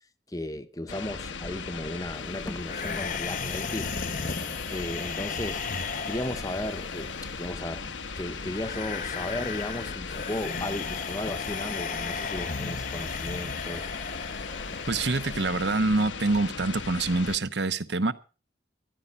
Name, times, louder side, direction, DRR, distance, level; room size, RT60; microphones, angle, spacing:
voice 1, 0.3-3.9 4.7-5.6 6.0-13.9, left 1 dB, 20° left, 0.8 m, -35 dB
sound 1, 0.9-17.4, left 5 dB, 90° left, 1.2 m, -38 dB
sound 2, 2.6-15.6, left 5 dB, 45° left, 1.1 m, -36 dB
voice 2, 14.9-18.1, right 3 dB, 65° right, 1.0 m, -26 dB
14.0 x 11.5 x 5.3 m
head